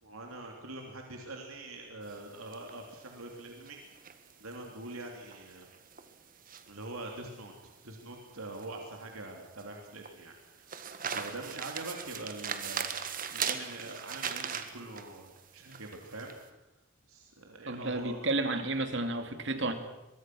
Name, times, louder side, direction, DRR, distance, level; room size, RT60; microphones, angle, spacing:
voice 1, 0.0-3.8 4.4-5.7 6.7-7.5 7.8-10.9 11.1-12.9 13.3-16.3 17.1-18.3, right 2 dB, 90° right, 2 dB, 3.3 m, -44 dB
sound 1, 2.0-16.4, right 7 dB, 40° right, 1.6 m, -40 dB
voice 2, 17.7-19.7, right 2 dB, 55° right, 8 dB, 2.4 m, -31 dB
23.5 x 22.5 x 6.3 m, 0.99 s
head